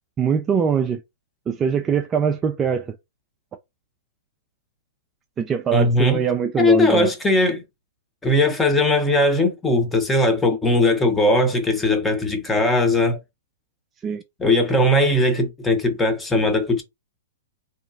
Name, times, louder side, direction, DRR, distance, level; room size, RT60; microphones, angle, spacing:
voice 1, 0.2-1.0 1.5-2.9 5.4-7.1 14.0-14.2, right 7 dB, 20° right, 0.3 m, -22 dB
voice 2, 5.7-6.2 6.6-7.6 8.2-13.2 14.4-16.8, left 2 dB, 10° left, 0.7 m, -19 dB
2.8 x 2.2 x 2.5 m
hypercardioid pair, 115°, 0 cm